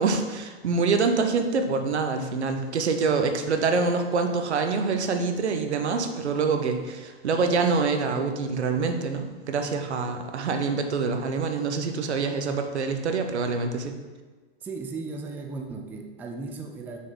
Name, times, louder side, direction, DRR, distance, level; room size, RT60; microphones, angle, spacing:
voice 1, 0.0-13.9, right 4 dB, 85° right, 6 dB, 0.9 m, -25 dB
voice 2, 14.6-17.0, right 3 dB, 5° right, 3 dB, 0.3 m, -36 dB
6.3 x 3.8 x 5.4 m, 1.3 s
hypercardioid pair, 120°, 33 cm